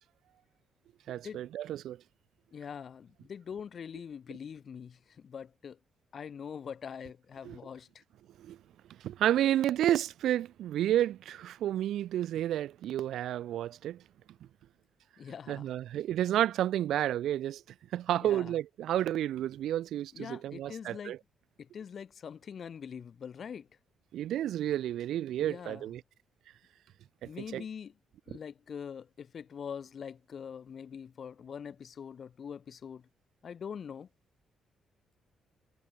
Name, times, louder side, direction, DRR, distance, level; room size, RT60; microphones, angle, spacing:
voice 1, 1.1-2.0 7.4-7.6 8.4-8.6 9.0-14.0 15.5-17.6 17.9-21.2 24.1-26.0 27.2-27.6, right 12 dB, 80° right, 0.3 m, -31 dB
voice 2, 2.5-5.8 6.1-8.0 15.2-15.7 18.2-18.5 20.1-21.1 21.6-23.7 25.4-25.9 27.2-27.9 28.3-33.0 33.4-34.1, left 7 dB, 50° left, 1.7 m, -43 dB
cardioid pair, 85°, 0 cm